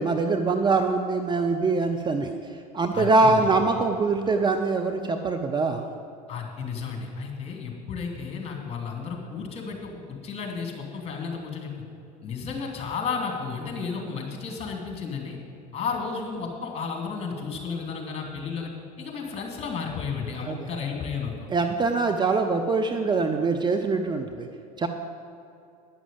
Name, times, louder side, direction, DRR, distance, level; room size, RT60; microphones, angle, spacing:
voice 1, 0.0-2.4 2.7-5.9 20.5-20.6 21.5-24.5 24.8-24.9, right 3 dB, 20° right, 6 dB, 0.6 m, -23 dB
voice 2, 2.9-3.5 6.3-11.7 12.2-15.4 15.7-18.7 19.0-21.5, left 5 dB, 30° left, 0 dB, 2.7 m, -33 dB
10.0 x 6.2 x 8.6 m, 2.6 s
hypercardioid pair, 85°, 20 cm